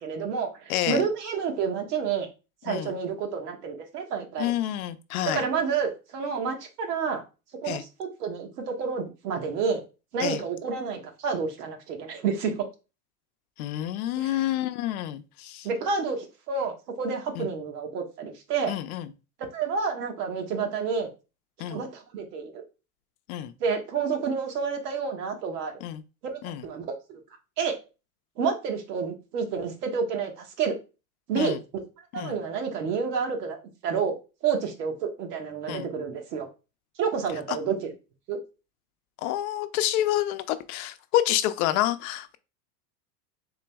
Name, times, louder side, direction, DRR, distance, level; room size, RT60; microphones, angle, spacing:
voice 1, 0.0-2.3 2.6-4.5 5.3-7.2 7.6-9.8 10.1-12.6 14.2-14.4 15.6-18.7 19.5-21.1 21.7-22.6 23.6-25.7 26.3-27.2 27.6-27.7 28.4-30.7 31.3-31.5 32.1-33.6 33.8-34.1 34.4-36.5 37.0-37.9 38.3-38.4, right 5 dB, 75° right, 1.4 m, -29 dB
voice 2, 0.7-1.0 2.7-2.9 4.4-5.4 7.7-7.8 10.2-10.4 13.6-15.7 17.4-17.5 18.7-19.1 21.6-21.8 23.3-23.5 25.8-26.0 26.4-26.7 31.4-31.6 32.1-32.4 35.7-35.9 37.5-37.6 39.2-42.4, left 13 dB, 65° left, 0.6 m, -28 dB
3.9 x 2.9 x 3.4 m
hypercardioid pair, 105°, 47 cm